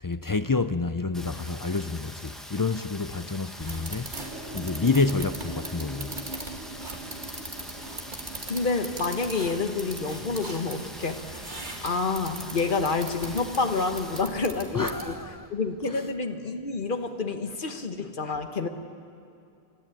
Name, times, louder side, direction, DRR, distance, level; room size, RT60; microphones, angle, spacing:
voice 1, 0.0-4.1 4.5-6.2 14.7-15.5 15.9-16.0, left 3 dB, 35° left, 0.3 m, -28 dB
Rain, 1.1-14.2, equal, ahead, 1.5 m, -44 dB
sound 1, 3.6-15.3, right 2 dB, 50° right, 2.3 m, -40 dB
sound 2, 4.1-9.1, right 1 dB, 80° right, 1.8 m, -43 dB
voice 2, 8.5-11.2 11.8-15.2 15.5-18.7, left 4 dB, 55° left, 1.4 m, -28 dB
28.5 x 12.5 x 9.0 m
omnidirectional pair, 1.0 m